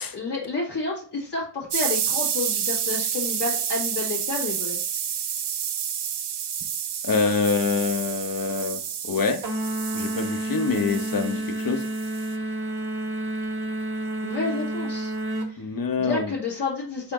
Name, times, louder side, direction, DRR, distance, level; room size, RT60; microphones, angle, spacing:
voice 1, 0.0-4.8 14.2-15.1 15.5-15.6 16.0-17.1, left 3 dB, 80° left, -5 dB, 1.9 m, -30 dB
sound 1, 1.7-12.3, right 8 dB, 80° right, 0.5 m, -30 dB
voice 2, 7.0-9.4 9.9-11.8 15.6-16.3, left 4 dB, 55° left, 7 dB, 0.8 m, -25 dB
sound 2, 9.4-15.5, right 1 dB, 65° right, 1.1 m, -30 dB
4.0 x 4.0 x 3.0 m, 0.43 s
wide cardioid pair, 50°, 41 cm